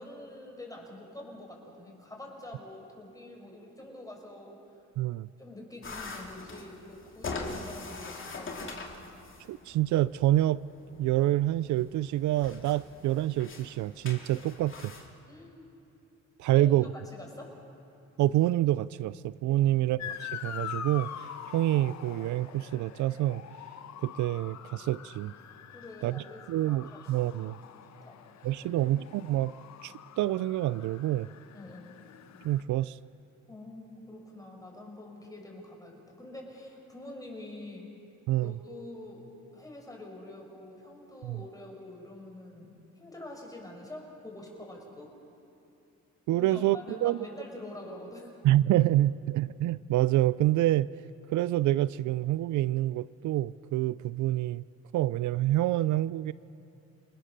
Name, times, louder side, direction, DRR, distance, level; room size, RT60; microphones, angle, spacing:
voice 1, 0.0-4.8 5.4-8.6 15.3-15.7 16.5-17.5 19.6-19.9 25.7-27.5 28.0-28.9 31.5-32.0 33.5-37.9 38.4-39.2 39.5-45.1 46.4-48.4, left 1 dB, 10° left, 0 dB, 6.2 m, -46 dB
voice 2, 5.0-5.3 9.5-10.6 11.0-14.9 16.4-16.9 18.2-23.4 24.0-25.3 26.0-27.6 28.4-29.5 29.8-31.3 32.4-33.0 38.3-38.5 41.2-41.4 46.3-47.2 48.4-50.9 51.3-54.6 54.9-56.3, right 14 dB, 75° right, 18 dB, 0.5 m, -27 dB
sound 1, 5.8-15.1, left 3 dB, 40° left, 3.1 m, -43 dB
Motor vehicle (road) / Siren, 20.0-32.6, left 9 dB, 65° left, 1.1 m, -44 dB
29.0 x 19.5 x 6.7 m, 2.7 s
cardioid pair, 90°, 30 cm